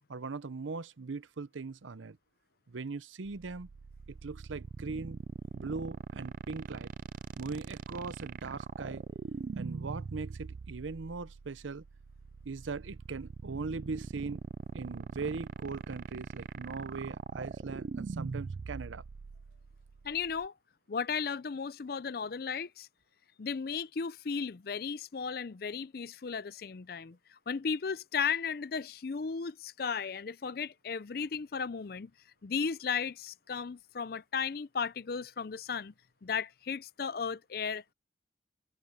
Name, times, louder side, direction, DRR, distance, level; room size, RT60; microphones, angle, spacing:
voice 1, 0.1-2.2 2.7-3.7 4.2-5.2 5.5-6.9 7.4-9.0 9.5-11.8 12.4-14.4 14.7-19.0, right 4 dB, 90° right, 0.7 m, -40 dB
sound 1, 3.3-20.5, right 4 dB, 45° right, 0.3 m, -41 dB
voice 2, 20.0-20.5 20.9-22.9 23.4-32.1 32.4-35.9 36.2-37.9, left 6 dB, 50° left, 0.5 m, -35 dB
head